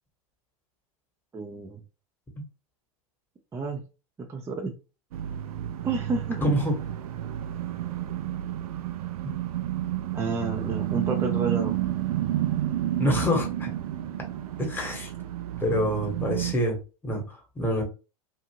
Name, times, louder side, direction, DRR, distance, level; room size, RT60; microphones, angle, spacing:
voice 1, 1.3-1.8 3.5-3.8 4.2-4.7 5.8-6.5 10.1-11.8, right 3 dB, 15° right, 2 dB, 0.4 m, -30 dB
sound 1, 5.1-16.5, right 12 dB, 75° right, 0.4 m, -30 dB
voice 2, 6.4-6.7 13.0-13.7 14.6-15.1 15.6-16.8 17.0-17.8, equal, 10° left, 1 dB, 1.1 m, -26 dB
2.7 x 2.5 x 2.8 m, 0.32 s
hypercardioid pair, 105°, 19 cm